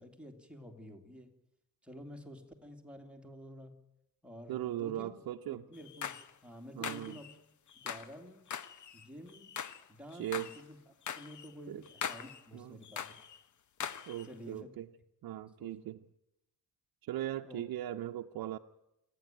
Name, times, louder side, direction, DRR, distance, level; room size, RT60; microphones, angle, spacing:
voice 1, 0.0-1.3 1.8-3.8 4.2-5.1 5.5-6.2 6.4-7.4 7.8-8.4 8.9-9.5 9.9-10.8 11.2-13.1 14.2-14.7 15.6-15.8 17.4-17.7, equal, 5° right, 3 dB, 2.6 m, -50 dB
voice 2, 4.5-5.6 6.8-7.2 10.2-10.5 11.7-11.8 12.5-12.8 14.1-14.9 15.2-16.0 17.0-18.6, right 13 dB, 75° right, 4 dB, 0.8 m, -39 dB
sound 1, 5.7-6.3 6.8-7.3 7.7-8.1 8.5-9.8 10.1-10.6 11.1-11.5 11.9-12.4 12.8-13.4 13.8-14.3, left 8 dB, 55° left, 1.1 m, -41 dB
28.0 x 10.5 x 9.0 m, 0.86 s
cardioid pair, 120°, 36 cm